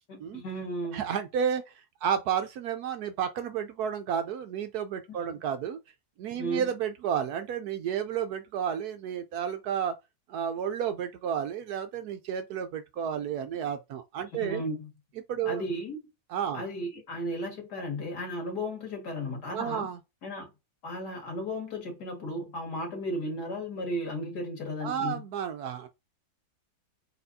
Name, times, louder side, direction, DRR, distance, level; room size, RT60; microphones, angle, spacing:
voice 1, 0.1-1.1 5.3-5.4 6.4-6.7 14.3-14.9 15.5-16.0 16.5-19.9 20.2-20.5 20.8-25.2, equal, 65° left, 2.5 m, -35 dB
voice 2, 0.9-5.8 6.2-9.9 10.3-14.6 15.3-15.6 16.3-16.7 19.5-20.0 24.8-25.9, right 8 dB, 70° right, 1.0 m, -31 dB
4.2 x 4.1 x 2.7 m
omnidirectional pair, 1.9 m